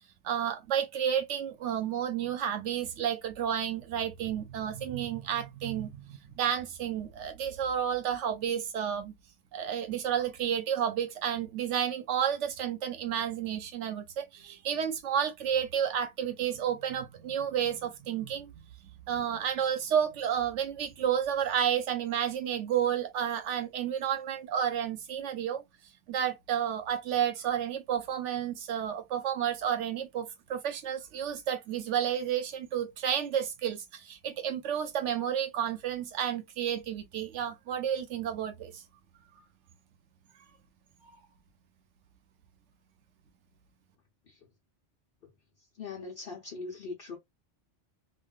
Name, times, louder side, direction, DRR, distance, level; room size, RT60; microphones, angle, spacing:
voice 1, 0.2-9.1 9.5-18.5 18.8-25.6 26.1-38.8 41.0-41.2, right 9 dB, 80° right, 0.9 m, -31 dB
voice 2, 45.8-47.2, left 4 dB, 55° left, 1.0 m, -40 dB
3.2 x 2.2 x 2.3 m
omnidirectional pair, 1.2 m